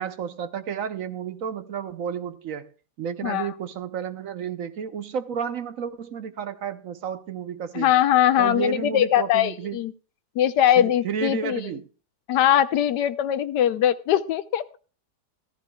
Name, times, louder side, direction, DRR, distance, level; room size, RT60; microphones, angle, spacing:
voice 1, 0.0-2.7 3.0-7.9 8.4-9.8 10.8-11.9, right 7 dB, 60° right, 1.0 m, -31 dB
voice 2, 3.2-3.5 7.7-9.9 10.4-11.6 12.3-14.8, left 11 dB, 90° left, 1.3 m, -21 dB
15.0 x 14.5 x 2.3 m
omnidirectional pair, 1.8 m